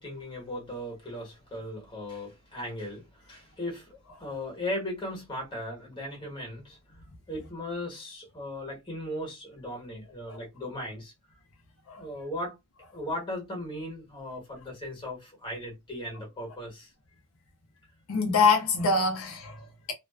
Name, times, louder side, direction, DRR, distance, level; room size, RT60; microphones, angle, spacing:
voice 1, 0.0-6.8 7.3-11.1 12.0-12.5 12.9-16.9, left 1 dB, 20° left, 1.1 m, -37 dB
voice 2, 18.1-19.9, left 4 dB, 70° left, 0.5 m, -25 dB
2.5 x 2.2 x 2.3 m
head